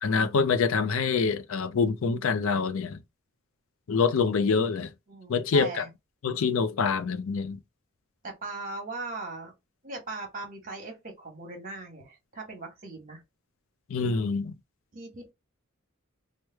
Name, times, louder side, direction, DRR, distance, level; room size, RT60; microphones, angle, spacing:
voice 1, 0.0-3.0 3.9-4.9 5.3-5.8 6.2-7.6 13.9-14.5, left 5 dB, 70° left, 0.4 m, -25 dB
voice 2, 5.1-5.9 8.2-9.5 9.8-13.2 14.0-14.3 14.9-15.3, right 3 dB, 40° right, 1.2 m, -39 dB
3.1 x 2.1 x 3.3 m
head